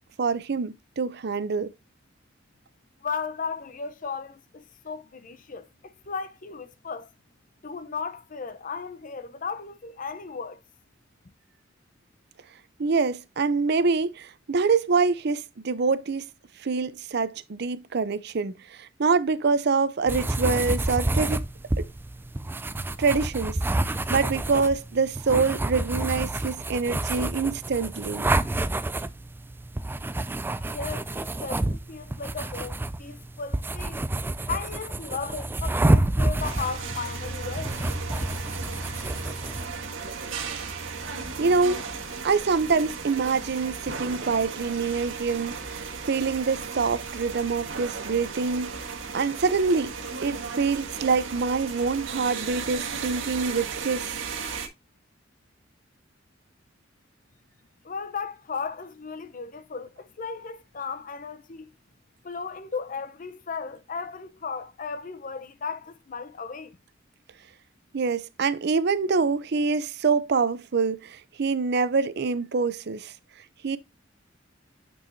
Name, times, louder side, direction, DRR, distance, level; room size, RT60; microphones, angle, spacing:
voice 1, 0.2-1.7 12.8-16.3 16.6-21.4 21.8-21.9 23.0-23.6 24.1-28.3 41.4-41.8 42.2-48.8 49.1-49.9 50.2-54.1 67.9-73.1 73.6-73.8, right 4 dB, 55° right, 0.5 m, -25 dB
voice 2, 3.0-7.1 7.6-10.6 30.7-34.0 34.5-37.7 57.8-61.7 62.2-66.8, left 5 dB, 45° left, 0.7 m, -35 dB
sound 1, 20.1-39.7, right 2 dB, 10° right, 0.3 m, -28 dB
sound 2, 36.4-54.7, right 4 dB, 85° right, 1.5 m, -35 dB
8.9 x 4.6 x 2.6 m
head